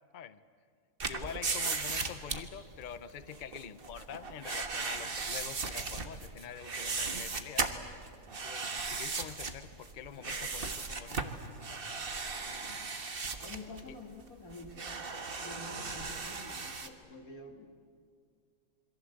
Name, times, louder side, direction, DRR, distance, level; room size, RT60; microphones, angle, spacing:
voice 1, 1.0-7.7 8.4-12.2, left 8 dB, 40° left, 12 dB, 0.8 m, -46 dB
sound 1, 1.0-16.9, right 4 dB, 40° right, 1.6 m, -37 dB
voice 2, 12.4-12.8 13.4-14.9 15.4-17.7, left 2 dB, 85° left, 3 dB, 2.8 m, -48 dB
27.5 x 22.5 x 7.9 m, 2.3 s
omnidirectional pair, 1.5 m